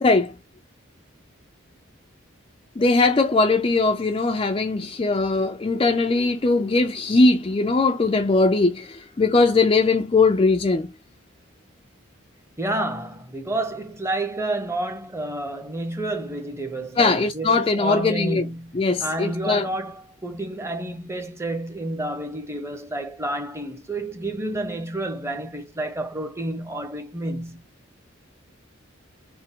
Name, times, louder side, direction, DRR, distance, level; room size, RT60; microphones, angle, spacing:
voice 1, 0.0-0.3 2.8-10.9 17.0-18.4 18.7-19.7, left 3 dB, 25° left, 0.3 m, -20 dB
voice 2, 12.6-27.6, right 1 dB, 15° right, 0.8 m, -30 dB
4.4 x 2.0 x 3.5 m
head